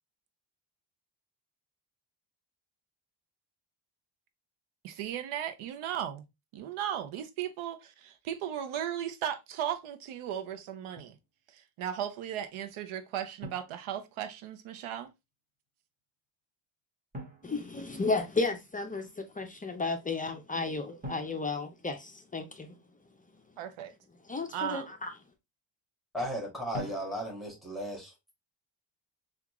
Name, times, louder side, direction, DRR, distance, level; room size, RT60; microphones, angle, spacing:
voice 1, 4.8-6.2 6.5-11.2 11.5-15.1 23.6-23.9 24.5-24.9, right 10 dB, 85° right, 0.7 m, -36 dB
Drum, 11.0-11.2 13.4-14.6 17.1-18.5 21.0-22.7 26.7-27.7, equal, 20° right, 1.1 m, -46 dB
voice 2, 17.4-22.7 24.3-25.1, left 3 dB, 20° left, 0.4 m, -33 dB
voice 3, 26.1-28.3, equal, ahead, 1.4 m, -36 dB
3.6 x 2.4 x 2.9 m
cardioid pair, 120°, 48 cm